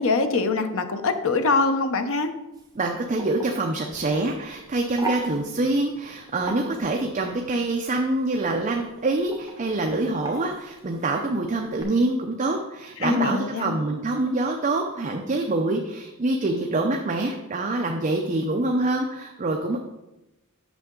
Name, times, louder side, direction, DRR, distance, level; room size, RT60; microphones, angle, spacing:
voice 1, 0.0-2.3 13.0-13.7, left 3 dB, 65° left, 8 dB, 0.7 m, -23 dB
sound 1, 2.5-11.8, right 3 dB, 15° right, 1.0 m, -39 dB
voice 2, 2.7-19.8, right 2 dB, 35° right, 2 dB, 0.6 m, -25 dB
8.3 x 6.4 x 3.7 m, 0.98 s
head